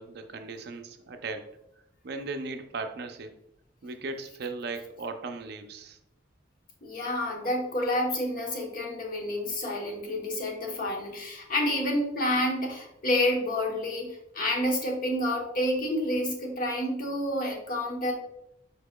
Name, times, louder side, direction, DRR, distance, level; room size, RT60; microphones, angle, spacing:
voice 1, 0.0-1.5 2.0-3.3 3.8-6.0, right 3 dB, 60° right, 7 dB, 0.4 m, -37 dB
voice 2, 6.8-18.1, left 1 dB, 50° left, 0 dB, 1.0 m, -29 dB
4.8 x 4.8 x 2.2 m, 0.82 s
head